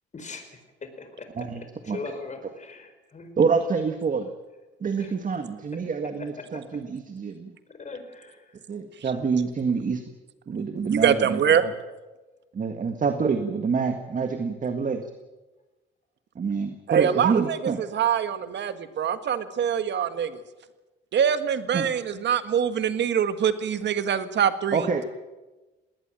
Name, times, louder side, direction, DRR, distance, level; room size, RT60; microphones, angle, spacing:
voice 1, 0.1-3.4 5.0-5.1 6.2-6.6 7.7-8.6, left 4 dB, 35° left, 8 dB, 4.9 m, -41 dB
voice 2, 3.4-4.3 4.8-7.5 8.7-10.0 10.5-11.7 12.5-15.1 16.4-17.8 21.7-21.9 24.7-25.0, right 5 dB, 40° right, 7 dB, 1.8 m, -27 dB
voice 3, 10.9-11.6 16.9-20.3 21.1-24.8, right 8 dB, 65° right, 11 dB, 1.7 m, -24 dB
19.5 x 19.0 x 9.0 m, 1.2 s
cardioid pair, 90°, 20 cm